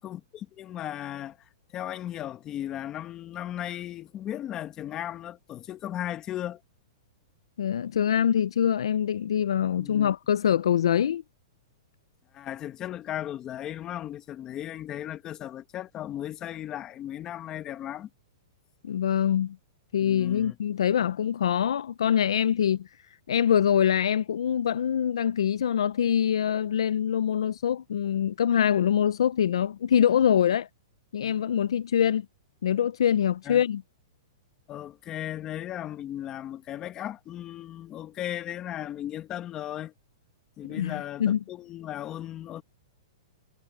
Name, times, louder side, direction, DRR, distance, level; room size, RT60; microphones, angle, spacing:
voice 1, 0.0-1.4 1.7-6.6 9.8-10.1 12.3-18.1 20.0-20.6 31.2-31.5 33.4-33.6 34.7-39.9 40.6-42.6, left 12 dB, 25° left, 1.7 m, -36 dB
voice 2, 7.6-11.2 18.8-19.6 19.9-22.9 23.3-30.7 31.1-32.3 32.6-33.8 40.7-41.4, left 9 dB, 80° left, 0.5 m, -24 dB
hypercardioid pair, 150°, 3 cm